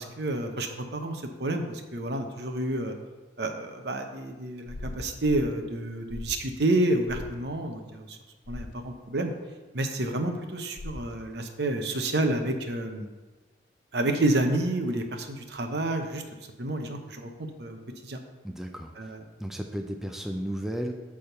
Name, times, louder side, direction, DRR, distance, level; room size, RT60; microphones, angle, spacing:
voice 1, 0.0-2.9 3.4-8.2 8.5-9.3 9.7-13.1 13.9-16.2 16.6-17.8 18.0-18.2 19.0-19.2, right 1 dB, 65° right, 5 dB, 0.8 m, -29 dB
sound 1, 4.7-5.5 6.1-6.5 7.1-7.3 8.4-8.7 10.8-11.1, left 1 dB, 80° left, 0.6 m, -39 dB
voice 2, 18.4-19.1 19.4-20.9, equal, ahead, 3 dB, 0.4 m, -34 dB
9.0 x 3.6 x 6.6 m, 1.3 s
head